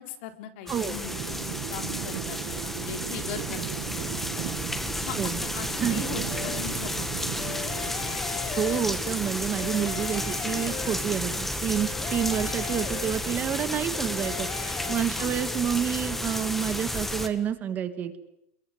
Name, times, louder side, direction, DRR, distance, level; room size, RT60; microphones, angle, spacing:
voice 1, 0.0-4.6 5.0-7.3 15.1-15.3, left 10 dB, 55° left, 7 dB, 3.7 m, -40 dB
sound 1, 0.7-17.3, left 1 dB, 5° left, 1.7 m, -32 dB
sound 2, 1.1-13.5, right 16 dB, 50° right, 1.8 m, -38 dB
sound 3, 6.3-6.9 7.4-9.2 9.6-11.4 11.7-13.5 13.9-15.0, left 14 dB, 30° left, 1.1 m, -38 dB
voice 2, 8.6-18.2, right 9 dB, 25° right, 10 dB, 1.7 m, -29 dB
29.0 x 22.5 x 8.0 m, 0.80 s
supercardioid pair, 165°, 7 cm